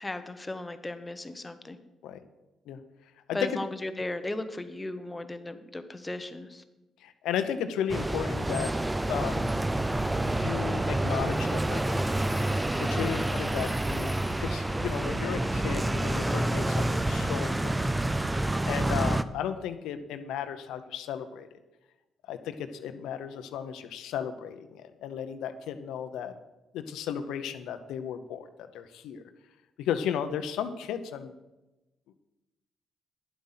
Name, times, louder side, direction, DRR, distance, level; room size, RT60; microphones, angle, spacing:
voice 1, 0.0-1.8 3.3-6.6 12.9-13.2, left 2 dB, 15° left, 9 dB, 1.0 m, -36 dB
voice 2, 7.0-8.7 9.1-9.5 10.2-12.0 12.8-17.9 18.7-21.5 22.3-26.3 26.7-28.5 28.7-29.2 29.8-31.3, left 8 dB, 85° left, 10 dB, 0.8 m, -34 dB
sound 1, 7.9-19.2, right 1 dB, 10° right, 0.5 m, -28 dB
10.5 x 7.7 x 5.7 m, 1.0 s
cardioid pair, 90°, 0 cm